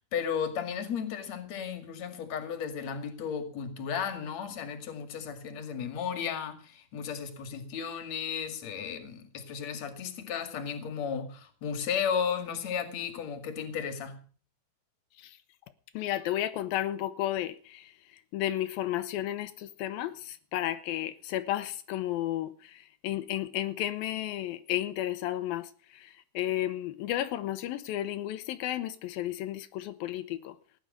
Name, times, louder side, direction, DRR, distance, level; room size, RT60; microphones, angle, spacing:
voice 1, 0.1-14.2, left 7 dB, 45° left, 2.6 m, -34 dB
voice 2, 15.9-17.9 18.3-30.6, left 13 dB, 90° left, 2.1 m, -33 dB
18.0 x 10.5 x 5.2 m
omnidirectional pair, 5.4 m